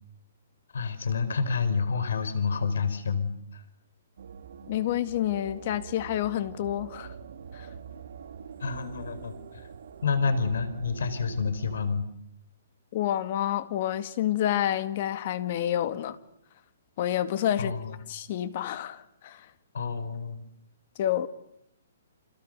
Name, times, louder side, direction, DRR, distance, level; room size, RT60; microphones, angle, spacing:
voice 1, 0.7-3.3 8.6-9.3 10.0-12.1 17.6-17.9 19.7-20.4, left 5 dB, 80° left, 4.9 m, -28 dB
sound 1, 4.2-11.9, right 6 dB, 70° right, 2.3 m, -45 dB
voice 2, 4.7-7.1 7.5-7.7 12.9-16.2 17.0-17.7 18.1-19.4 21.0-21.3, left 11 dB, 40° left, 2.0 m, -28 dB
29.0 x 28.0 x 6.8 m
hypercardioid pair, 160°, 0 cm